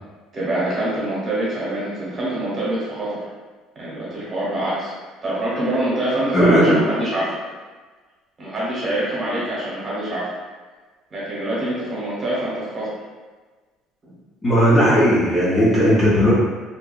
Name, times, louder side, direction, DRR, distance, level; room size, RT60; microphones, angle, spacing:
voice 1, 0.3-3.3 3.7-4.9 5.2-7.4 8.4-10.3 11.1-12.9 14.0-14.2, right 1 dB, 25° right, -8 dB, 0.9 m, -25 dB
voice 2, 6.3-6.8 14.4-16.3, equal, 20° left, -8 dB, 0.5 m, -16 dB
2.7 x 2.4 x 2.2 m, 1.3 s
cardioid pair, 160°, 0 cm